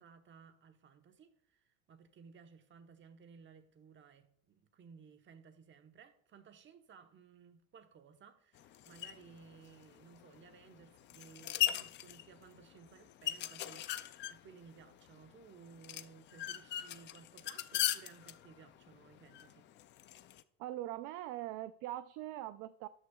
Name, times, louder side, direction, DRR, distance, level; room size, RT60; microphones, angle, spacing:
voice 1, 0.0-19.7, right 6 dB, 25° right, 1.0 m, -58 dB
sound 1, 8.5-20.4, left 13 dB, 30° left, 0.4 m, -40 dB
voice 2, 20.6-22.9, right 14 dB, 50° right, 0.5 m, -42 dB
13.0 x 9.5 x 2.3 m
supercardioid pair, 120°, 44 cm